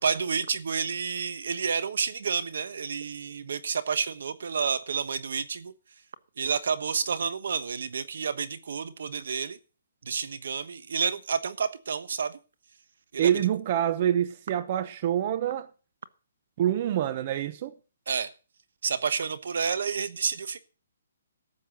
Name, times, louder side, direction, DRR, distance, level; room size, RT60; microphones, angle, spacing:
voice 1, 0.0-5.7 6.4-9.6 10.0-12.4 13.1-13.3 18.1-18.3 18.8-20.6, right 6 dB, 70° right, 1.2 m, -30 dB
voice 2, 13.2-15.7 16.6-17.7, right 10 dB, 40° right, 0.9 m, -26 dB
12.5 x 7.8 x 6.4 m
hypercardioid pair, 160°, 0 cm